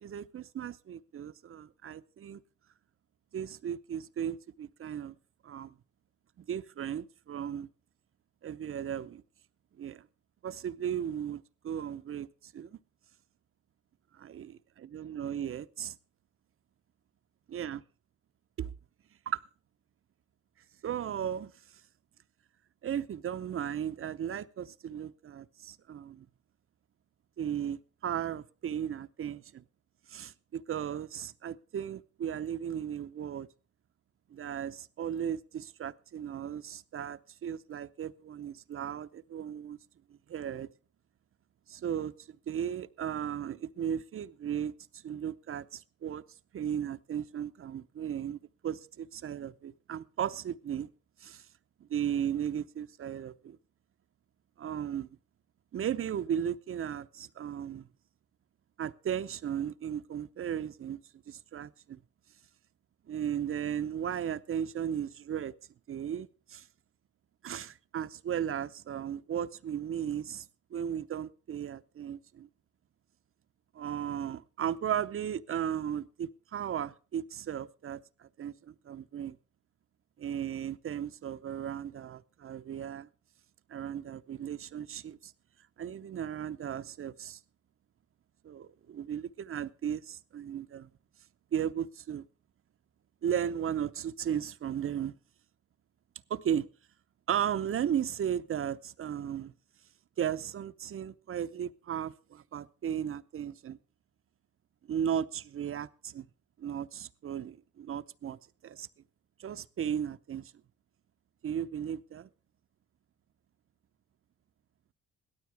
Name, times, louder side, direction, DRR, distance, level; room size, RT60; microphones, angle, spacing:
voice 1, 0.0-2.4 3.3-5.2 5.4-5.7 6.4-7.7 8.4-9.2 9.8-10.1 10.4-12.8 14.1-14.4 14.9-16.0 17.5-17.8 18.6-18.7 19.3-19.4 20.8-21.5 22.8-26.3 27.4-29.6 30.1-33.5 34.3-39.8 40.1-40.7 41.7-46.2 46.5-50.9 51.2-51.4 51.9-53.6 54.6-55.2 55.7-57.9 58.8-61.0 61.3-62.0 63.1-65.5 65.9-66.7 67.4-72.5 73.7-79.4 80.2-83.1 83.7-85.3 85.8-87.4 88.4-90.9 91.5-92.3 93.2-95.1 96.3-96.7 97.3-99.5 100.2-103.8 104.9-106.3 106.6-108.9 109.4-110.5 111.4-112.3, right 9 dB, 45° right, 0.7 m, -36 dB
17.0 x 12.5 x 3.4 m
cardioid pair, 90°, 30 cm